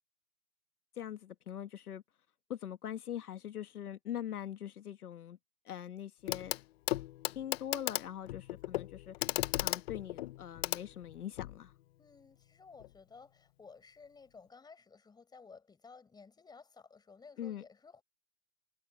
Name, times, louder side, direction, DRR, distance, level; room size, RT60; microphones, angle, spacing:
voice 1, 1.0-2.0 2.5-5.4 5.7-6.6 7.4-9.2 9.6-11.7 17.4-17.6, left 10 dB, 85° left, 1.9 m, -42 dB
Clock, 6.3-6.6 6.9-11.6 12.8-12.9, left 16 dB, 45° left, 0.9 m, -36 dB
voice 2, 12.0-18.0, left 5 dB, 10° left, 4.7 m, -56 dB
hypercardioid pair, 145°, 44 cm